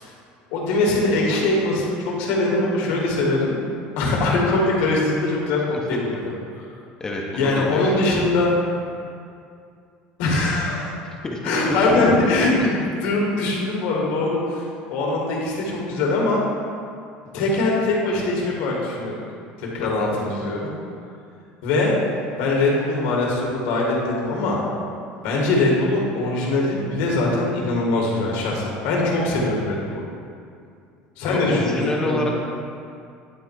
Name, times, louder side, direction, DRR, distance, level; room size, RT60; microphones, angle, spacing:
voice 1, 0.5-3.6 4.0-6.3 7.4-8.5 10.2-10.9 11.4-14.6 14.9-16.5 17.3-19.1 19.6-20.7 21.6-21.9 22.4-24.6 25.2-30.0 31.2-32.3, left 2 dB, 85° left, -2 dB, 1.8 m, -22 dB
voice 2, 7.0-7.8 11.2-12.1 19.8-20.2 31.2-32.3, left 2 dB, 15° left, -1 dB, 0.6 m, -27 dB
9.9 x 3.6 x 4.6 m, 2.4 s
cardioid pair, 150°, 4 cm